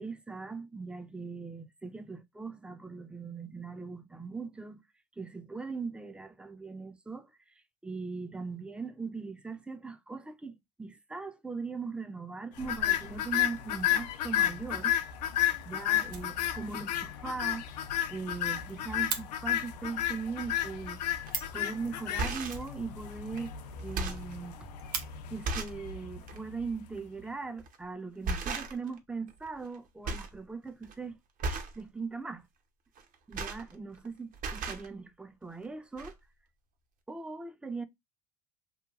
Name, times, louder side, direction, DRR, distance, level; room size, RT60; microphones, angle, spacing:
voice 1, 0.0-4.8 5.2-7.3 7.8-15.0 15.7-17.7 18.1-21.0 21.5-24.7 25.3-31.2 31.8-32.4 33.3-36.2 37.1-37.8, right 4 dB, 5° right, 0.3 m, -40 dB
sound 1, 12.6-26.9, left 11 dB, 85° left, 0.5 m, -33 dB
Fire, 16.0-16.9 17.2-17.3 17.6-17.7 17.9-18.0 18.3-19.2 21.0-21.1 21.3-21.7 22.4-23.4 23.7-23.8 24.0-24.1 24.5-25.1 26.1-26.2 26.8-27.4, right 7 dB, 85° right, 0.7 m, -39 dB
sound 2, 21.3-21.5 22.0-22.7 23.4-23.5 23.8-24.3 24.9-25.0 25.4-25.8 26.2-26.4 27.6-27.8 28.2-29.0 29.3-29.8 30.0-30.4 30.7-30.9 31.4-31.8 33.0-34.1 34.3-34.9 35.7-35.8 36.0-36.1, right 3 dB, 40° right, 0.7 m, -35 dB
2.9 x 2.2 x 2.4 m
hypercardioid pair, 85°, 20 cm